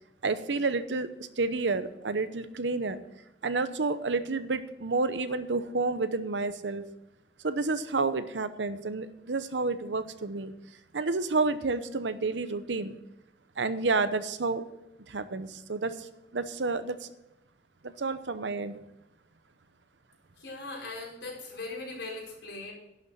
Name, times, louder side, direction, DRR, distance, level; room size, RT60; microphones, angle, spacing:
voice 1, 0.2-3.0 3.4-6.8 7.4-10.5 10.9-13.0 13.6-14.6 15.1-16.1 16.3-17.1 17.8-18.8, right 3 dB, 90° right, 12 dB, 0.8 m, -30 dB
voice 2, 20.4-22.7, left 3 dB, 80° left, -2 dB, 4.9 m, -39 dB
11.0 x 6.8 x 7.5 m, 0.91 s
head